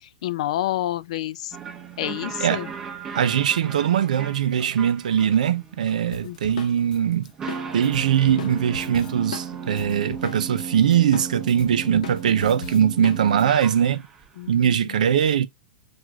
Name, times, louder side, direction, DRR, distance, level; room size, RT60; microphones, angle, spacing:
voice 1, 0.2-1.6 2.0-2.7 6.2-6.4 14.4-15.1, left 13 dB, 55° left, 0.4 m, -29 dB
sound 1, 1.5-14.3, right 6 dB, 20° right, 0.9 m, -36 dB
voice 2, 3.1-7.3 7.7-14.0 14.5-15.5, right 9 dB, 80° right, 0.5 m, -21 dB
Drum kit, 6.1-10.6 10.9-13.4, left 5 dB, 80° left, 0.8 m, -38 dB
6.0 x 2.4 x 2.3 m
hypercardioid pair, 155°, 4 cm